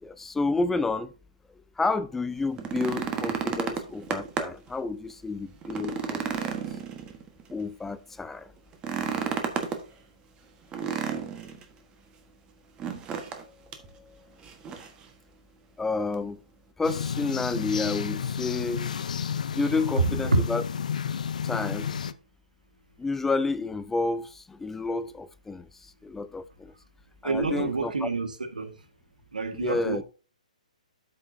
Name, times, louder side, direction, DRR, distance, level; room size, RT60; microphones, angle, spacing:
voice 1, 0.0-1.1 1.8-6.6 7.5-8.5 13.8-14.2 15.8-16.4 16.8-18.9 19.5-20.6 21.4-21.9 23.0-26.7 27.2-28.1 29.5-30.0, left 3 dB, 5° left, 0.4 m, -30 dB
sound 1, 2.4-4.7 5.1-5.2 5.6-7.5 8.7-9.8 10.7-11.6 12.8-13.4 13.7-13.9 14.4-15.0 16.1-16.2, right 7 dB, 20° right, 1.4 m, -32 dB
sound 2, 16.8-22.1, left 7 dB, 65° left, 0.6 m, -31 dB
voice 2, 27.2-28.7 29.3-30.0, right 3 dB, 85° right, 1.8 m, -28 dB
13.0 x 5.6 x 2.7 m
hypercardioid pair, 135°, 4 cm